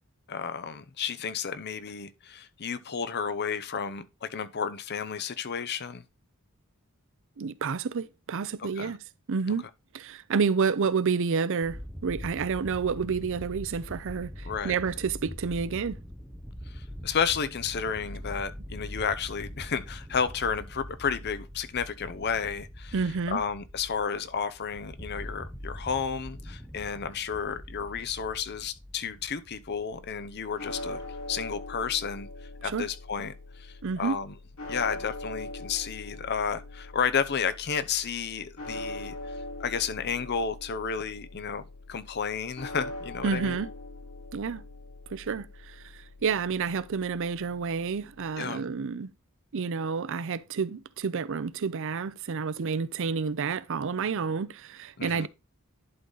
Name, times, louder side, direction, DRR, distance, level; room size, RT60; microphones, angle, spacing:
voice 1, 0.3-6.0 8.6-8.9 14.4-14.7 16.7-22.9 23.3-31.0 31.3-32.3 32.6-34.3 34.7-39.2 39.6-43.6 48.4-48.6 55.0-55.3, left 6 dB, 50° left, 0.7 m, -32 dB
voice 2, 7.4-9.0 9.3-9.6 9.9-16.0 22.9-23.4 32.6-32.9 33.8-34.2 43.2-43.7 44.3-44.6 45.1-49.1 49.5-55.3, right 5 dB, 60° right, 0.5 m, -29 dB
sound 1, 11.6-30.0, equal, ahead, 0.9 m, -43 dB
sound 2, 29.9-48.3, left 2 dB, 85° left, 2.9 m, -42 dB
11.0 x 3.9 x 3.9 m
head